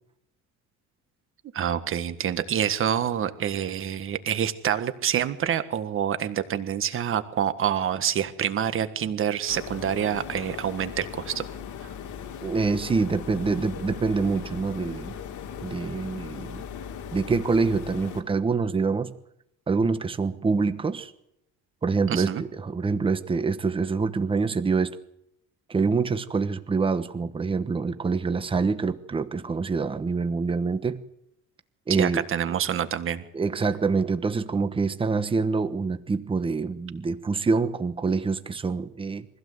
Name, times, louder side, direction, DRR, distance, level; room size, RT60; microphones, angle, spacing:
voice 1, 1.5-11.4 22.1-22.4 32.0-33.2, right 9 dB, 40° right, 11 dB, 1.6 m, -27 dB
sound 1, 9.5-18.2, left 8 dB, 65° left, 2.6 m, -38 dB
voice 2, 12.4-15.1 15.6-16.7 17.1-19.1 19.7-21.1 21.8-25.0 25.7-31.0 31.9-32.3 33.3-39.3, right 4 dB, 15° right, 10 dB, 1.1 m, -26 dB
23.5 x 16.0 x 8.0 m, 0.79 s
cardioid pair, 155°, 32 cm